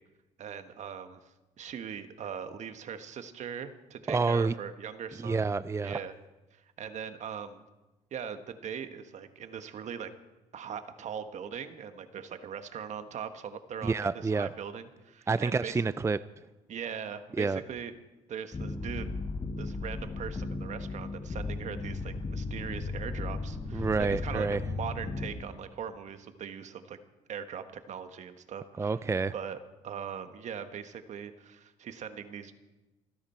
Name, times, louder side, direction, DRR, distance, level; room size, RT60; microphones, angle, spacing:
voice 1, 0.4-1.2 1.6-5.5 5.8-6.1 6.5-7.6 8.1-10.1 10.5-14.0 14.2-15.8 16.7-17.9 18.3-19.1 19.6-27.0 27.3-29.0 29.3-32.5, right 7 dB, 60° right, 1.4 m, -40 dB
voice 2, 4.1-4.5 5.2-6.0 13.8-14.5 15.3-16.2 17.4-17.6 23.7-24.6 28.8-29.3, right 4 dB, 20° right, 0.5 m, -28 dB
sound 1, 18.5-25.3, left 3 dB, 30° left, 3.6 m, -36 dB
27.0 x 10.5 x 4.5 m
supercardioid pair, 70°, 14 cm